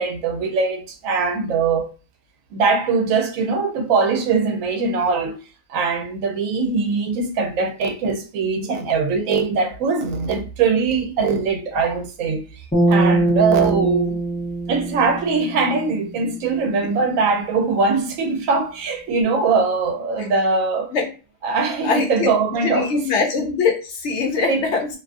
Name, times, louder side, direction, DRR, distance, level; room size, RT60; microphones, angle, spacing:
voice 1, 0.0-1.9 2.5-5.3 5.7-14.2 14.7-20.9 21.4-23.0 24.4-24.7, right 4 dB, 80° right, 1.0 m, -21 dB
sound 1, 12.7-16.1, right 2 dB, 15° left, 0.3 m, -21 dB
voice 2, 21.8-22.3 22.6-24.9, left 4 dB, 65° left, 0.8 m, -22 dB
2.5 x 2.3 x 2.4 m
omnidirectional pair, 1.4 m